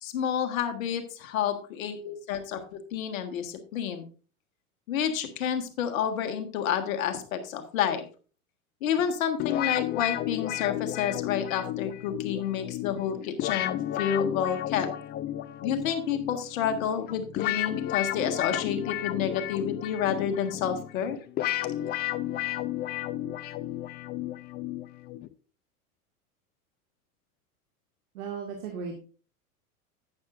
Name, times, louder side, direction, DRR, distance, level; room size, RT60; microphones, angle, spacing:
voice 1, 0.0-4.0 4.9-8.0 8.8-14.9 15.6-21.2, left 8 dB, 65° left, 7 dB, 1.7 m, -29 dB
sound 1, 9.4-25.3, left 13 dB, 25° left, 0.4 m, -33 dB
voice 2, 28.1-29.0, right 5 dB, 65° right, 1 dB, 2.0 m, -36 dB
11.5 x 9.0 x 2.5 m, 0.38 s
hypercardioid pair, 90°, 44 cm